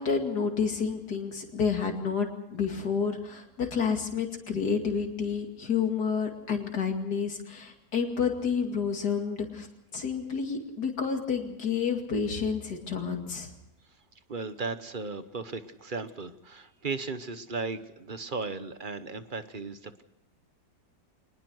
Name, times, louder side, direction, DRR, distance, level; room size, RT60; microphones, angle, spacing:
voice 1, 0.0-9.7 9.9-13.5, left 6 dB, 70° left, 3 dB, 2.9 m, -29 dB
voice 2, 14.3-20.0, right 4 dB, 35° right, 11 dB, 1.0 m, -36 dB
24.5 x 20.0 x 6.3 m, 0.85 s
omnidirectional pair, 1.8 m